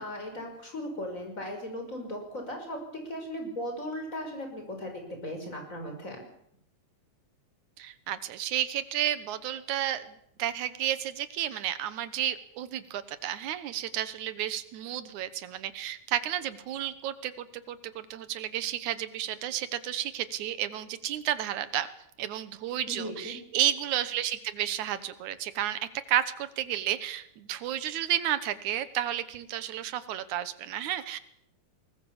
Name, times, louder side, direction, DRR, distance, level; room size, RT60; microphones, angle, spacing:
voice 1, 0.0-2.8 3.0-6.2 22.9-23.4, equal, 25° left, 3 dB, 6.0 m, -37 dB
voice 2, 7.8-21.9 22.2-31.2, right 11 dB, 80° right, 13 dB, 2.5 m, -32 dB
22.0 x 19.5 x 7.1 m, 0.74 s
omnidirectional pair, 3.4 m